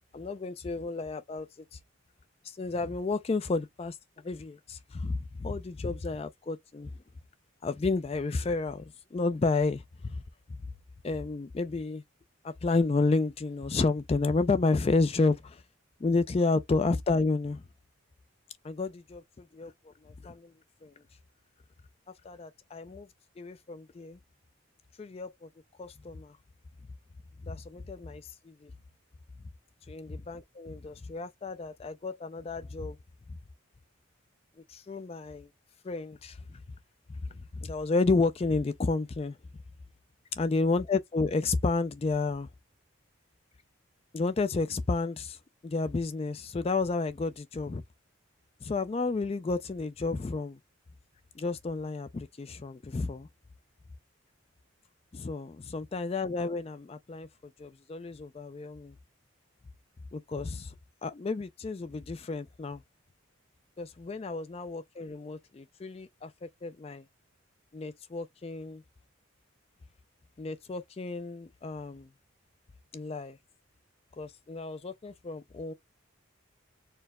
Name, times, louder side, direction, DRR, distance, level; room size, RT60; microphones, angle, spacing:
voice 1, 0.1-1.8 2.4-4.0 4.2-6.9 7.6-8.8 9.1-10.2 11.0-12.0 12.4-15.6 16.0-17.6 18.6-19.2 19.5-20.5 20.8-20.9 22.2-23.1 23.4-24.2 25.0-25.5 25.8-26.3 27.4-28.7 29.9-33.0 34.7-35.5 35.8-36.6 37.5-39.4 40.4-42.5 44.1-45.4 45.6-47.8 48.6-50.6 51.4-53.3 55.1-57.3 57.6-58.9 60.1-60.7 61.0-62.8 63.8-67.0 67.7-68.8 70.4-72.1 72.9-73.4 74.2-75.7, left 3 dB, 30° left, 0.3 m, -31 dB
4.5 x 2.0 x 3.5 m
head